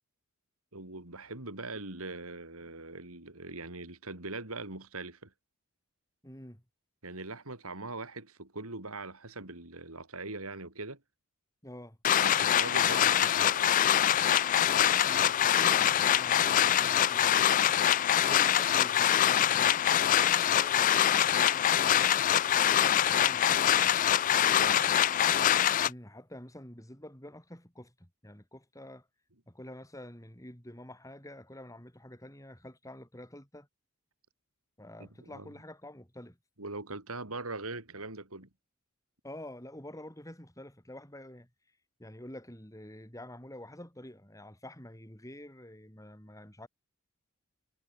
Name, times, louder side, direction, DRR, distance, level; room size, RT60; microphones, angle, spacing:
voice 1, 0.7-5.3 7.0-11.0 12.2-13.8 24.3-25.0 35.0-35.5 36.6-38.5, right 2 dB, 75° right, 4.5 m, -41 dB
voice 2, 6.2-6.6 11.6-12.0 15.0-17.6 18.3-24.0 25.9-29.1 29.5-33.7 34.8-36.4 39.2-41.5 42.0-46.7, left 1 dB, 15° left, 6.2 m, -48 dB
sound 1, 12.0-25.9, left 10 dB, 35° left, 0.3 m, -24 dB
head